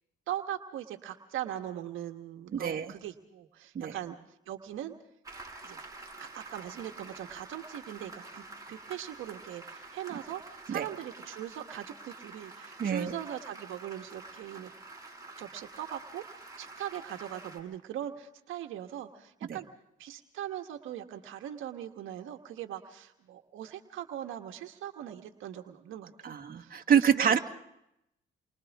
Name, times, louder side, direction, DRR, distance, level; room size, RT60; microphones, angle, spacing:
voice 1, 0.3-4.2 4.5-4.9 5.6-5.8 6.2-14.7 15.4-19.7 20.0-27.4, right 11 dB, 85° right, 5 dB, 1.6 m, -40 dB
voice 2, 2.5-2.9 3.8-3.9 10.7-10.8 12.8-13.1 19.5-19.6 26.2-27.4, right 8 dB, 45° right, 3 dB, 1.9 m, -26 dB
Applause, 5.2-17.6, right 3 dB, 15° right, 5.7 m, -48 dB
29.5 x 24.5 x 3.6 m, 0.81 s
cardioid pair, 90°, 20 cm